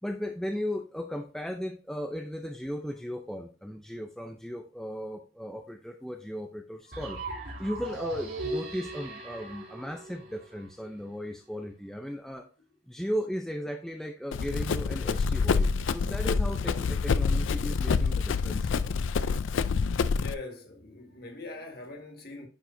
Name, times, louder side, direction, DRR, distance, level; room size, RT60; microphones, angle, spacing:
voice 1, 0.0-7.2 7.6-12.5 12.9-18.9, equal, ahead, 0.5 m, -36 dB
sound 1, 6.9-10.9, right 2 dB, 55° right, 2.9 m, -38 dB
Run, 14.3-20.3, left 5 dB, 70° left, 0.4 m, -27 dB
voice 2, 20.1-22.5, left 3 dB, 50° left, 1.6 m, -43 dB
10.0 x 4.7 x 2.7 m
head